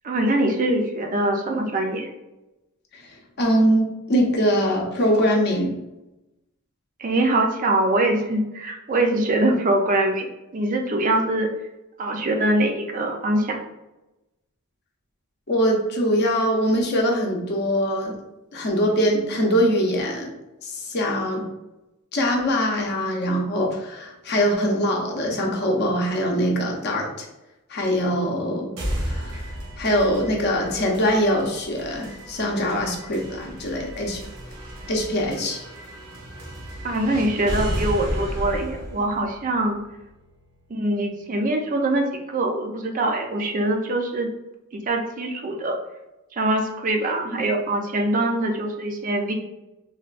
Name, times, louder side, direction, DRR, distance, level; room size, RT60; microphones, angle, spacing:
voice 1, 0.0-2.1 7.0-10.3 10.5-11.5 12.0-13.6 36.8-39.8 40.7-44.3 44.7-45.7 46.3-49.3, right 1 dB, 40° right, 3 dB, 0.4 m, -23 dB
voice 2, 3.4-5.7 15.5-18.2 18.5-20.3 20.6-21.4 22.1-27.3 27.7-29.4 29.8-34.2 34.9-35.6, equal, 50° left, 0 dB, 0.6 m, -23 dB
sound 1, 28.8-40.7, equal, 90° right, 0.8 m, -33 dB
3.4 x 2.2 x 2.4 m, 0.97 s
head